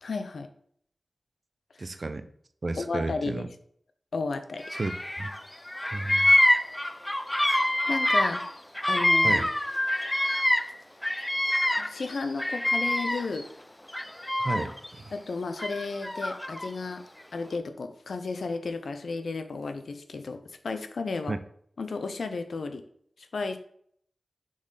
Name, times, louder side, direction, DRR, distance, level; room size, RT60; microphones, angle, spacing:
voice 1, 0.0-0.5 2.8-3.5 4.1-4.6 7.9-8.4 8.9-9.4 11.8-13.5 15.1-17.0 17.3-21.4 21.8-22.8 23.3-23.6, left 4 dB, 80° left, 8 dB, 0.6 m, -33 dB
voice 2, 1.8-2.3 2.6-3.5 4.7-5.3 5.9-6.3 9.2-9.5 14.4-15.1 21.3-21.4, right 2 dB, 55° right, 11 dB, 0.6 m, -33 dB
Bird vocalization bird call bird song, 4.6-5.4 5.7-10.7 11.0-13.4 13.9-14.9 15.6-16.7, left 1 dB, 15° left, 0.5 m, -25 dB
6.2 x 3.9 x 4.1 m, 0.64 s
cardioid pair, 45°, 0 cm